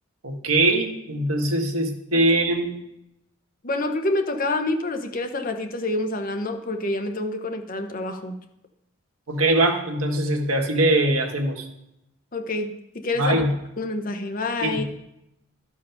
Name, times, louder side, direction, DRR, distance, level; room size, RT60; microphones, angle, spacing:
voice 1, 0.2-2.7 9.3-11.7 13.2-13.5 14.6-14.9, right 1 dB, 90° right, 3 dB, 1.5 m, -22 dB
voice 2, 3.6-8.4 12.3-13.4 13.8-14.9, left 2 dB, 40° left, 6 dB, 0.9 m, -27 dB
13.0 x 4.6 x 5.8 m, 0.83 s
head